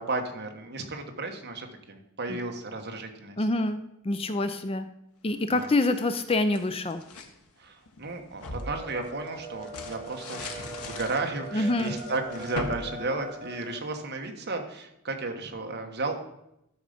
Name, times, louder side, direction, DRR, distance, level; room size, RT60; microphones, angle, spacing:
voice 1, 0.0-3.5 5.5-5.7 7.6-16.2, right 3 dB, 50° right, 4 dB, 1.4 m, -34 dB
voice 2, 3.4-4.9 5.2-7.0 11.5-12.0, left 2 dB, 25° left, 10 dB, 0.5 m, -26 dB
sound 1, 5.4-7.3 7.9-13.9, left 2 dB, 90° left, 1.4 m, -41 dB
sound 2, 8.5-13.8, right 2 dB, 35° right, 4.2 m, -41 dB
12.5 x 6.5 x 5.1 m, 0.82 s
head